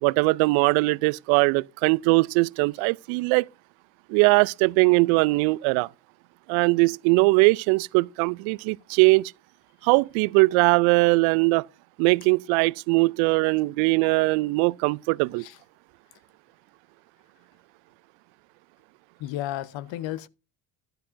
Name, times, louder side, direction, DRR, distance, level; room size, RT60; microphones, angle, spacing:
voice 1, 0.0-3.5 4.1-5.9 6.5-9.2 9.8-11.6 12.0-15.4, right 26 dB, 70° right, 0.5 m, -21 dB
voice 2, 19.2-20.3, left 13 dB, 65° left, 0.8 m, -33 dB
12.5 x 12.0 x 2.6 m
hypercardioid pair, 50°, 50 cm